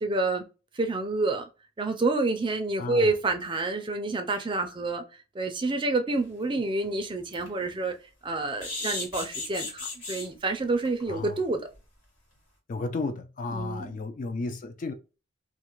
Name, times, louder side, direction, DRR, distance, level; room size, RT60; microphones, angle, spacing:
voice 1, 0.0-0.4 0.7-1.4 1.8-5.0 5.3-7.9 8.2-11.7 13.5-13.9, right 2 dB, 25° right, 0.4 m, -28 dB
voice 2, 2.8-3.1 11.1-11.4 12.7-14.9, left 3 dB, 40° left, 0.4 m, -33 dB
sound 1, 6.3-6.4 6.8-6.9 7.3-7.5 8.6-10.3 10.8-11.0 11.3-11.4 11.7-11.8, left 3 dB, 80° left, 1.3 m, -35 dB
2.4 x 2.4 x 2.9 m
head